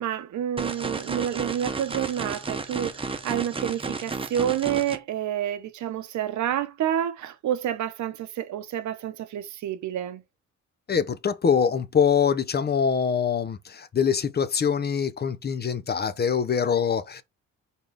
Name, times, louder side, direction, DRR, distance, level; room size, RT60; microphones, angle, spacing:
voice 1, 0.0-10.2, right 10 dB, 70° right, 0.9 m, -29 dB
sound 1, 0.6-5.0, right 4 dB, 20° right, 0.9 m, -32 dB
voice 2, 10.9-17.2, left 7 dB, 35° left, 0.6 m, -24 dB
4.1 x 3.7 x 3.4 m
cardioid pair, 90°, 30 cm